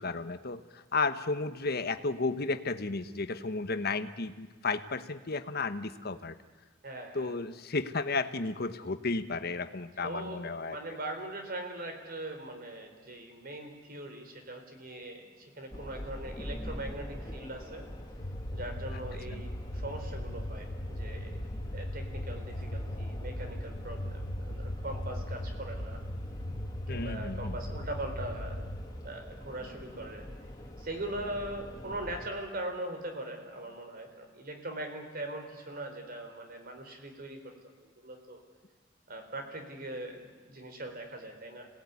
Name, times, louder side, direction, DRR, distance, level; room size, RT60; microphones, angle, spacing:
voice 1, 0.0-6.4 7.1-10.8 26.9-27.6, left 3 dB, 55° left, 10 dB, 1.2 m, -33 dB
voice 2, 6.8-7.3 10.0-17.9 18.5-21.4 21.7-26.0 26.9-28.7 29.0-30.3 30.8-38.4 39.1-41.7, right 1 dB, 50° right, 5 dB, 4.1 m, -41 dB
sound 1, 15.7-32.3, equal, 20° left, 2.5 m, -45 dB
sound 2, 18.2-28.8, left 1 dB, 80° left, 1.9 m, -38 dB
26.5 x 18.5 x 9.6 m, 1.4 s
head